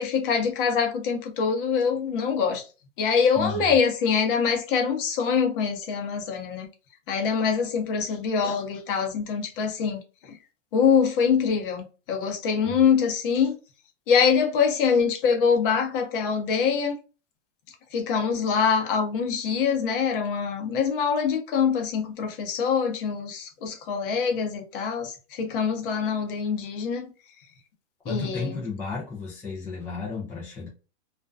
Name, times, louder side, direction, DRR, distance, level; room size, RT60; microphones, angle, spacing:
voice 1, 0.0-2.7 3.0-6.7 7.1-10.0 10.3-10.4 10.7-13.6 14.1-16.9 17.9-27.1 28.1-28.6, left 6 dB, 45° left, 0.8 m, -24 dB
voice 2, 3.4-3.8 12.6-12.8 28.0-30.7, left 4 dB, 5° left, 0.4 m, -33 dB
2.4 x 2.2 x 2.3 m
hypercardioid pair, 135°, 36 cm